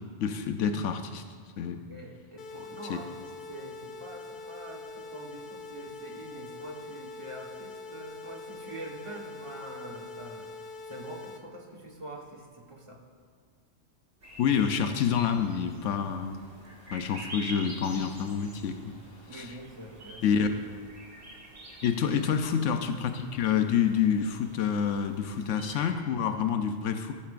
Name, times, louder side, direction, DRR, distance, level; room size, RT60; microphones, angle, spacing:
voice 1, 0.2-1.2 1.6-1.8 2.9-3.0 14.4-16.4 16.9-18.8 19.3-19.5 20.2-20.5 21.8-27.1, left 7 dB, 90° left, 7 dB, 1.0 m, -27 dB
voice 2, 1.9-10.5 10.9-13.0 19.3-20.4 22.1-22.2, right 1 dB, 25° right, 0 dB, 1.3 m, -44 dB
sound 1, 2.4-11.4, left 3 dB, 50° left, 0.7 m, -44 dB
sound 2, 14.2-25.9, right 1 dB, 85° right, 2.4 m, -47 dB
15.0 x 8.7 x 2.5 m, 2.1 s
omnidirectional pair, 1.2 m